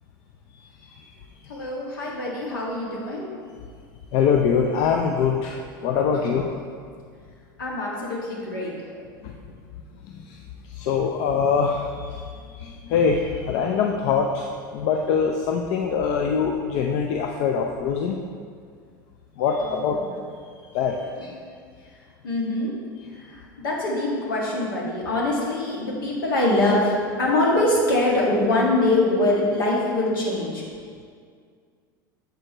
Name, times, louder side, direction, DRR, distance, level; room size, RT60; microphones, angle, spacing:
voice 1, 1.5-3.3 6.1-6.2 7.6-8.9 19.6-20.1 21.2-21.4 22.2-22.7 23.1-30.6, left 2 dB, 75° left, -3 dB, 1.8 m, -24 dB
voice 2, 4.1-6.6 9.2-9.4 10.1-10.4 10.7-12.2 12.6-14.5 14.7-18.2 19.4-20.0 20.7-21.1, left 6 dB, 55° left, 2 dB, 0.5 m, -23 dB
8.0 x 6.4 x 3.0 m, 2.1 s
hypercardioid pair, 80°, 11 cm